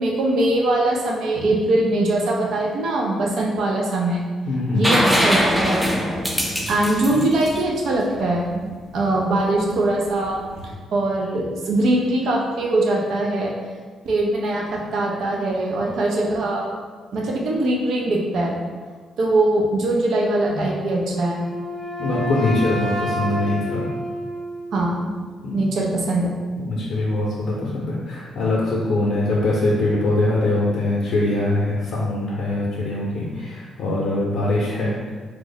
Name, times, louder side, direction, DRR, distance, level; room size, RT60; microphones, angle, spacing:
voice 1, 0.0-4.2 4.7-5.9 6.7-8.6 8.9-10.4 10.9-13.5 14.0-16.7 17.1-18.6 19.2-21.4 24.7-25.1 25.5-26.3, right 2 dB, 70° right, -1 dB, 0.6 m, -21 dB
voice 2, 4.5-4.9 7.1-7.2 20.5-20.6 22.0-23.9 25.4-25.6 26.6-35.0, left 2 dB, 65° left, -5 dB, 0.6 m, -22 dB
sound 1, 4.8-8.5 10.4-10.5, equal, 5° right, 0.5 m, -22 dB
Wind instrument woodwind instrument, 21.1-25.1, equal, 20° right, 1.0 m, -29 dB
3.0 x 2.1 x 3.9 m, 1.5 s
cardioid pair, 90°, 0 cm